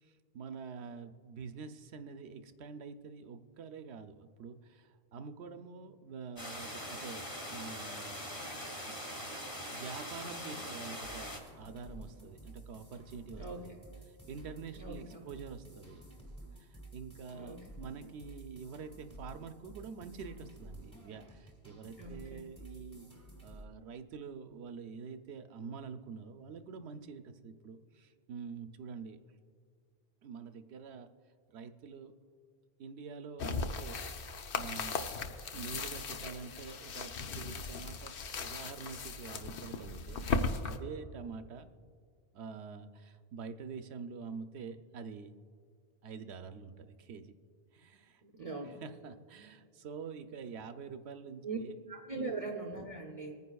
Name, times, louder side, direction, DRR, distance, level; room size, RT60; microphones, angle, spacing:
voice 1, 0.0-8.2 8.8-9.0 9.7-11.3 11.6-13.7 14.1-16.0 16.6-23.1 23.4-29.2 30.2-31.1 31.5-32.1 32.8-34.0 34.5-35.1 35.5-41.7 42.3-45.3 46.0-47.3 47.7-48.2 48.8-51.7 52.2-52.4, right 5 dB, 90° right, 9 dB, 0.9 m, -46 dB
sound 1, 6.4-11.4, equal, 25° left, 1.5 m, -42 dB
sound 2, 11.0-23.7, right 1 dB, 5° left, 1.5 m, -52 dB
voice 2, 13.4-13.8 14.8-15.3 17.4-17.8 22.0-22.4 48.2-48.8 51.4-51.6 51.9-53.3, right 3 dB, 40° right, 1 dB, 0.7 m, -41 dB
sound 3, 33.4-40.8, left 4 dB, 60° left, 0.8 m, -37 dB
24.5 x 9.6 x 2.3 m, 2.2 s
omnidirectional pair, 1.1 m